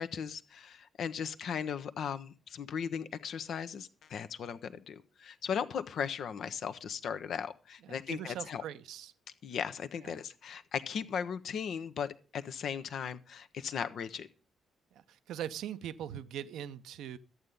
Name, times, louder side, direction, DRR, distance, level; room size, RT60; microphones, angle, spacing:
voice 1, 0.0-8.6 9.4-14.3, left 7 dB, 55° left, 0.9 m, -37 dB
voice 2, 7.8-9.1 10.0-10.1 14.9-17.2, right 10 dB, 60° right, 0.7 m, -41 dB
13.5 x 8.8 x 5.3 m
figure-of-eight pair, 40°, 0 cm